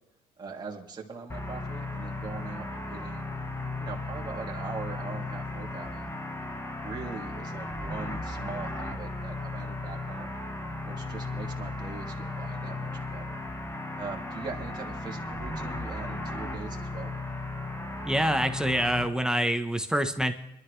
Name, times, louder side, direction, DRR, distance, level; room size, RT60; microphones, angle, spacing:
voice 1, 0.4-3.3 3.8-6.1 6.8-10.4 10.8-13.4 14.0-17.1, right 4 dB, 25° right, -2 dB, 2.7 m, -41 dB
sound 1, 1.3-19.1, left 2 dB, 15° left, 1.4 m, -36 dB
voice 2, 18.0-20.3, equal, 5° right, 7 dB, 1.0 m, -26 dB
23.0 x 11.5 x 3.3 m, 0.87 s
cardioid pair, 95°, 16 cm